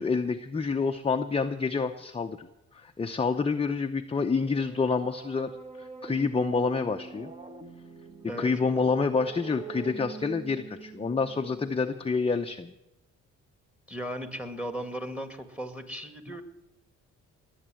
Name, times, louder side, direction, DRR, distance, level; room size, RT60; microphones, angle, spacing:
voice 1, 0.0-2.5 2.7-5.5 5.8-7.3 8.4-12.7, left 4 dB, 20° left, 5 dB, 0.7 m, -28 dB
sound 1, 4.1-11.9, right 5 dB, 20° right, 1.4 m, -44 dB
voice 2, 8.2-8.5 13.9-16.4, equal, 5° right, 8 dB, 2.0 m, -36 dB
20.5 x 8.1 x 7.6 m, 0.92 s
cardioid pair, 90°, 30 cm